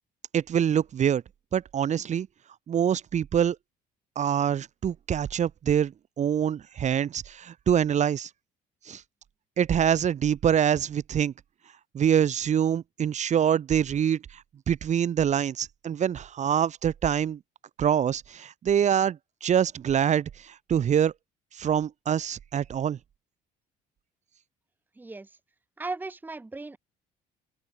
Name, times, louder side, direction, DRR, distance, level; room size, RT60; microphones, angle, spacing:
voice 1, 0.3-1.2 1.5-2.3 2.7-3.6 4.2-8.3 8.9-9.0 9.6-11.3 11.9-17.4 17.8-21.1 21.6-23.0, right 9 dB, 45° right, 1.1 m, -25 dB
voice 2, 25.0-25.3 25.8-26.8, right 3 dB, 10° right, 0.9 m, -36 dB
open air
cardioid pair, 110°, 17 cm